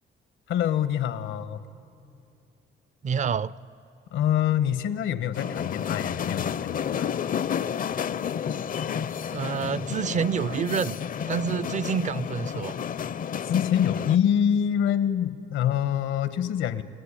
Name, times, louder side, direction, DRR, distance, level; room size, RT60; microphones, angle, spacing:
voice 1, 0.5-1.6 4.1-7.1 13.4-16.8, left 9 dB, 85° left, 13 dB, 1.1 m, -25 dB
voice 2, 3.0-3.5 9.3-11.0 11.3-12.8, right 7 dB, 40° right, 19 dB, 0.5 m, -28 dB
sound 1, 5.3-14.2, left 8 dB, 45° left, 0.5 m, -31 dB
28.5 x 17.5 x 10.0 m, 2.6 s
cardioid pair, 90°, 20 cm